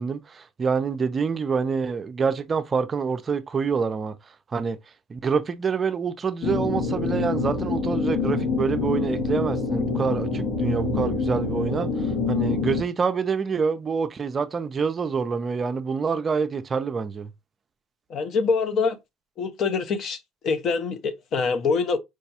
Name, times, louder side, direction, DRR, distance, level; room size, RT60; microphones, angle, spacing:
voice 1, 0.0-4.2 4.5-4.8 5.1-17.3, right 5 dB, 30° right, 0.4 m, -26 dB
sound 1, 6.4-12.8, left 4 dB, 75° left, 1.0 m, -26 dB
voice 2, 18.1-19.0 19.4-20.2 20.4-22.0, left 4 dB, 50° left, 0.6 m, -24 dB
4.7 x 2.2 x 2.7 m
cardioid pair, 110°, 0 cm